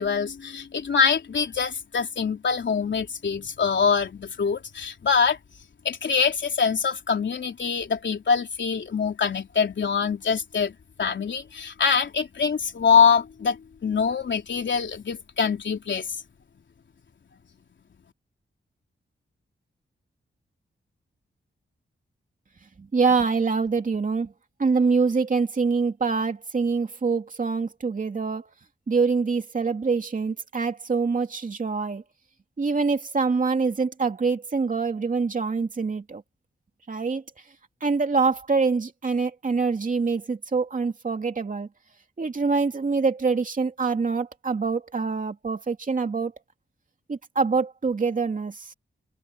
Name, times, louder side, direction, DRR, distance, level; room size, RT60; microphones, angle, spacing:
voice 1, 0.0-5.4 5.9-16.1, left 6 dB, 65° left, 3.6 m, -24 dB
voice 2, 22.8-24.3 24.6-28.5 28.9-32.0 32.6-36.2 36.9-37.2 37.8-41.7 42.2-46.3 47.1-48.7, right 4 dB, 40° right, 2.7 m, -25 dB
wide cardioid pair, 160°, 20 cm